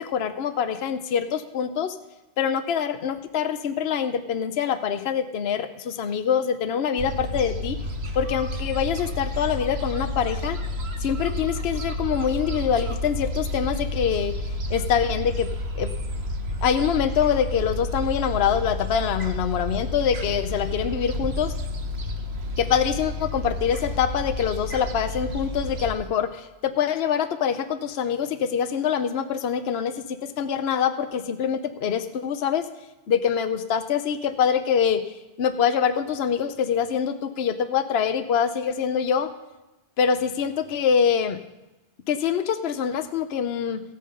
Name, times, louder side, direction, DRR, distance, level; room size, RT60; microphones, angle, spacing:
voice 1, 0.0-2.0 2.4-7.8 8.1-10.6 11.0-14.3 14.7-15.5 15.8-15.9 16.6-21.5 22.6-32.7 33.1-39.3 40.0-41.4 42.1-43.8, left 7 dB, 70° left, 9 dB, 1.0 m, -25 dB
Gull seagull, 7.0-25.9, left 1 dB, 70° right, 1.4 m, -30 dB
16.0 x 8.5 x 5.5 m, 1.0 s
omnidirectional pair, 1.1 m